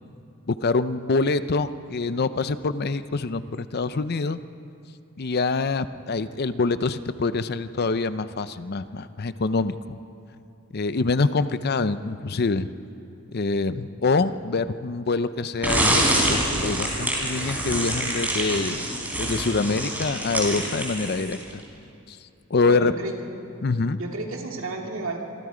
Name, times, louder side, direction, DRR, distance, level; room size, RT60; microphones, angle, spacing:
voice 1, 0.5-4.4 5.2-10.0 10.7-12.7 13.3-16.0 16.3-18.9 19.2-21.6 22.1-22.2 22.5-22.9 23.6-24.0, left 3 dB, 50° left, 13 dB, 0.6 m, -25 dB
sound 1, 15.6-21.5, right 1 dB, 10° right, 3.7 m, -25 dB
voice 2, 22.6-23.1 24.0-25.2, right 2 dB, 65° right, 1 dB, 2.5 m, -32 dB
26.5 x 23.0 x 5.1 m, 2.6 s
head